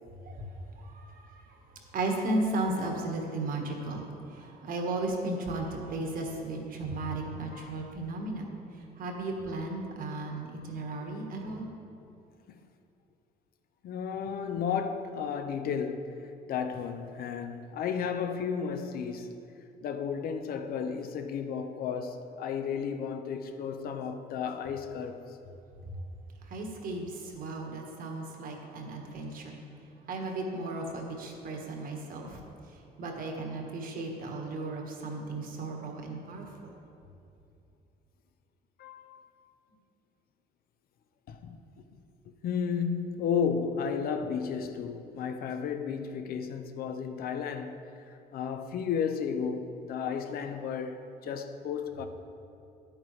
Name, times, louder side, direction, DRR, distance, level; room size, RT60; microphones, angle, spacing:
voice 1, 0.2-1.6 1.9-8.5 8.7-11.7 25.9-26.0 26.4-29.6 30.1-32.4 32.7-36.8, right 2 dB, 55° right, 1.4 m, -35 dB
voice 2, 13.8-19.3 19.8-25.2 38.8-39.3 41.3-41.6 42.4-47.8 48.1-52.1, left 6 dB, 60° left, 0.7 m, -33 dB
9.9 x 8.7 x 3.2 m
cardioid pair, 110°, 17 cm